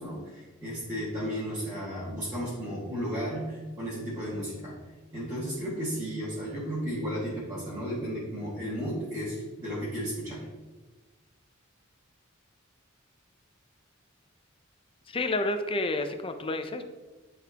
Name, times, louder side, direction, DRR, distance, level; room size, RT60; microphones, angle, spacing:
voice 1, 0.0-4.8 5.1-10.5, equal, 15° right, -10 dB, 1.8 m, -34 dB
voice 2, 15.1-16.8, left 2 dB, 25° left, 8 dB, 0.5 m, -30 dB
10.0 x 4.1 x 2.9 m, 1.2 s
head